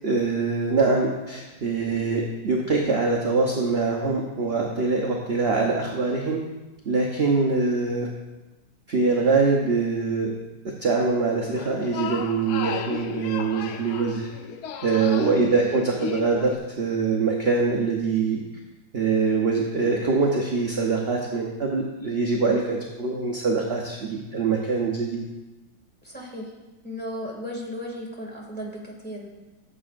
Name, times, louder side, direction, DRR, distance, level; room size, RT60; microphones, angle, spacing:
voice 1, 0.0-6.4 6.8-8.1 8.9-10.3 10.8-14.3 14.8-18.4 18.9-25.2, right 4 dB, 45° right, -1 dB, 0.9 m, -24 dB
sound 1, 11.5-16.6, left 8 dB, 70° left, 1.0 m, -35 dB
voice 2, 26.0-26.5 26.8-29.3, equal, 5° left, -3 dB, 2.0 m, -35 dB
15.0 x 7.6 x 2.5 m, 1.1 s
omnidirectional pair, 2.0 m